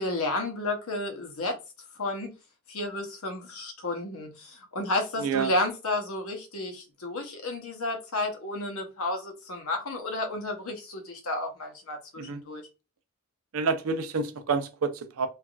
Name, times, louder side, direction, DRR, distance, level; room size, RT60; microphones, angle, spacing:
voice 1, 0.0-1.6 2.0-2.3 2.7-12.0 12.2-12.6, left 2 dB, 80° left, 0.8 m, -32 dB
voice 2, 5.2-5.5 12.2-12.4 13.5-15.3, right 5 dB, 80° right, 0.5 m, -28 dB
3.3 x 2.4 x 2.3 m
head